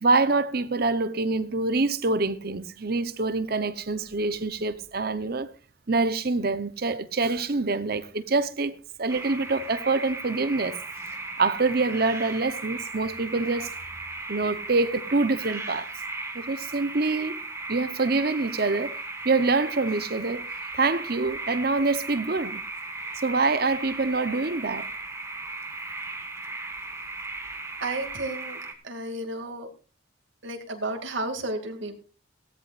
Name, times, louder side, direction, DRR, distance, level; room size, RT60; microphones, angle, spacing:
voice 1, 0.0-5.5 5.9-10.8 11.4-13.7 14.3-15.9 16.3-17.4 17.7-19.0 19.2-20.5 20.7-22.6 23.2-24.9, right 3 dB, 50° right, 0.9 m, -25 dB
sound 1, 9.1-28.7, right 3 dB, 15° right, 1.5 m, -37 dB
voice 2, 27.8-28.6 28.8-29.7 30.4-32.0, right 2 dB, 70° right, 2.4 m, -32 dB
17.5 x 13.5 x 2.5 m
head